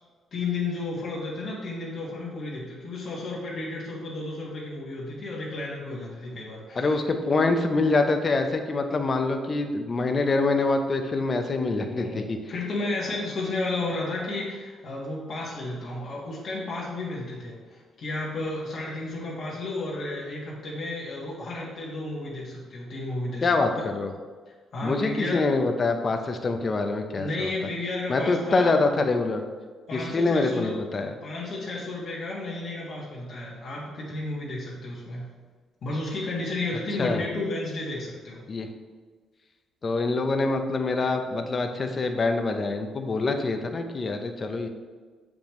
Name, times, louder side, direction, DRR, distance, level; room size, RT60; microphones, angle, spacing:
voice 1, 0.3-6.9 11.8-12.2 12.5-23.5 24.7-25.4 27.2-28.7 29.9-30.8 31.2-35.3 35.8-38.4, left 2 dB, 55° left, -5 dB, 1.6 m, -32 dB
voice 2, 6.8-12.4 23.4-24.1 24.8-27.5 28.1-29.4 29.9-31.1 37.0-37.2 38.5-38.7 39.8-44.7, left 3 dB, 40° left, 6 dB, 0.7 m, -25 dB
6.9 x 5.3 x 3.1 m, 1.4 s
cardioid pair, 90°, 0 cm